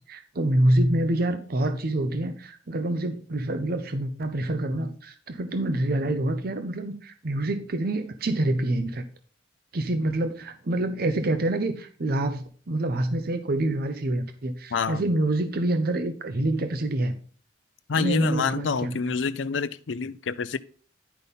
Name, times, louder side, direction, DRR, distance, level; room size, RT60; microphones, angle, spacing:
voice 1, 0.1-9.0 9.7-17.2 18.0-19.0, right 1 dB, 55° right, 0.7 m, -26 dB
voice 2, 14.7-15.0 17.9-20.6, left 5 dB, 80° left, 0.5 m, -27 dB
10.0 x 5.3 x 4.1 m
head